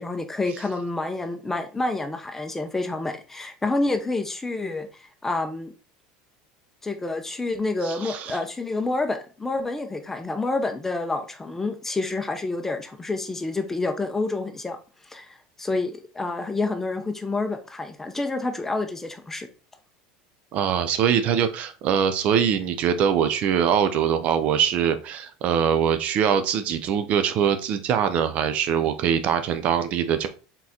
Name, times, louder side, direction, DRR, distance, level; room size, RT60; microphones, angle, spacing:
voice 1, 0.0-5.7 6.8-14.8 15.1-19.5, left 2 dB, 10° left, 0.6 m, -28 dB
voice 2, 7.8-8.4 20.5-30.3, right 8 dB, 50° right, 0.5 m, -23 dB
4.0 x 3.7 x 2.8 m
supercardioid pair, 110°, 3 cm